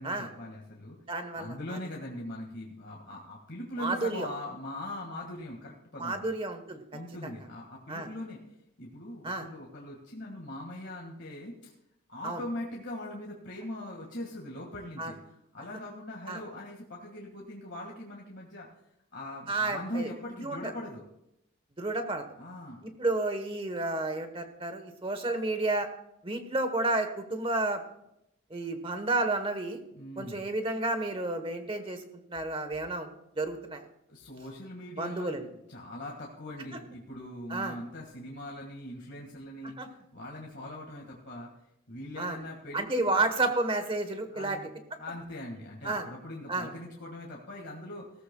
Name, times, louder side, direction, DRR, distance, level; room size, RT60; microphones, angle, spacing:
voice 1, 0.0-1.0 1.4-6.3 6.9-8.4 8.8-11.7 12.1-18.7 19.1-21.0 22.4-22.8 29.9-30.4 34.1-41.5 41.9-43.2 44.3-44.7 45.0-48.0, left 1 dB, 50° left, -1 dB, 1.9 m, -41 dB
voice 2, 1.1-1.8 3.8-4.3 6.0-6.8 7.2-7.3 7.9-8.1 9.2-9.5 12.2-12.4 15.0-15.1 16.3-16.4 19.5-20.1 20.4-20.6 21.8-22.2 23.0-25.9 26.2-27.8 28.5-29.8 30.2-32.0 32.3-33.1 33.4-33.8 35.0-35.4 37.5-37.8 39.8-39.9 42.2-42.4 42.7-44.6 45.8-46.1 46.5-46.7, right 2 dB, 25° right, 8 dB, 1.2 m, -31 dB
18.0 x 13.5 x 2.3 m, 0.82 s
head